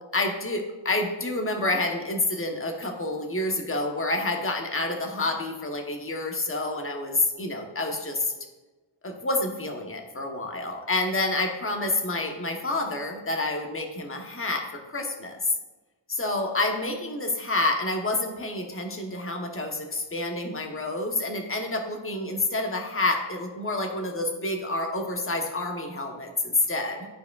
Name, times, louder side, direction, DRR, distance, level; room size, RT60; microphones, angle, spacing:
voice 1, 0.1-8.3 9.0-15.5 16.1-27.1, left 2 dB, 25° left, 3 dB, 0.9 m, -28 dB
12.0 x 4.8 x 2.3 m, 1.2 s
wide cardioid pair, 95°, 47 cm